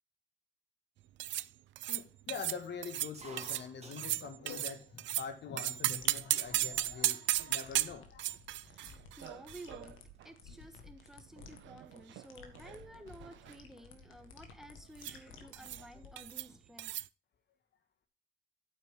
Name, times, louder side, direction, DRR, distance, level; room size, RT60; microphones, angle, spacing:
sound 1, 1.2-1.5 1.8-2.0 2.3-2.6 2.8-3.1 3.4-3.7 3.9-5.3 5.6-10.3 10.5-10.6 11.4-12.3 12.6-12.8 13.1-13.5 15.0-15.2 15.5-15.9 16.2-16.5 16.8-17.1, right 14 dB, 70° right, 0.4 m, -35 dB
voice 1, 1.9-8.4, left 6 dB, 60° left, 1.8 m, -44 dB
sound 2, 3.1-4.9 5.3-6.0 6.6-6.7 7.0-7.4 8.0-8.1 8.3-10.6 10.9-11.2 12.5-12.7 13.8-13.9 14.2-14.3 14.6-15.4, right 4 dB, 30° right, 2.3 m, -55 dB
sound 3, 6.0-16.4, left 6 dB, 90° left, 1.7 m, -55 dB
voice 2, 8.6-10.0 10.2-16.9, right 1 dB, ahead, 1.3 m, -53 dB
9.0 x 8.4 x 3.7 m
cardioid pair, 90°, 20 cm